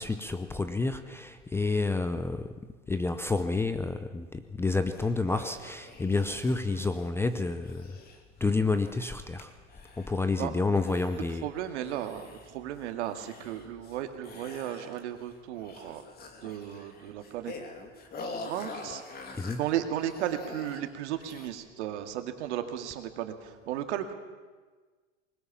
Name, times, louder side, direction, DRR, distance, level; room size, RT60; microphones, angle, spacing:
voice 1, 0.0-2.5 2.9-8.0 8.4-9.5 10.0-11.5 19.4-19.6, left 3 dB, 5° left, 10 dB, 0.6 m, -29 dB
sound 1, 4.9-9.4 9.7-10.4 10.7-11.4 11.8-12.7 13.0-14.0 14.2-15.2 15.5-20.8 21.2-21.5, left 3 dB, 25° left, 2.6 m, -46 dB
voice 2, 11.4-16.0 16.4-17.5 18.4-19.0 19.6-24.1, right 11 dB, 65° right, 7 dB, 2.2 m, -35 dB
21.0 x 18.0 x 7.3 m, 1.4 s
hypercardioid pair, 130°, 37 cm